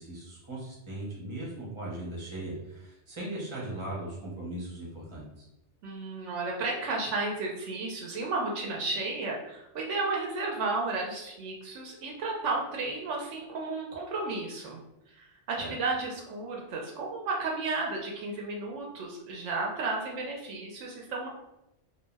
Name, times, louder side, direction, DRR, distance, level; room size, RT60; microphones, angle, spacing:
voice 1, 0.0-5.4 15.6-15.7, right 1 dB, 25° right, -5 dB, 0.9 m, -38 dB
voice 2, 5.8-14.8 15.1-21.3, right 3 dB, 80° right, -1 dB, 0.9 m, -33 dB
2.5 x 2.1 x 3.3 m, 0.89 s
omnidirectional pair, 1.2 m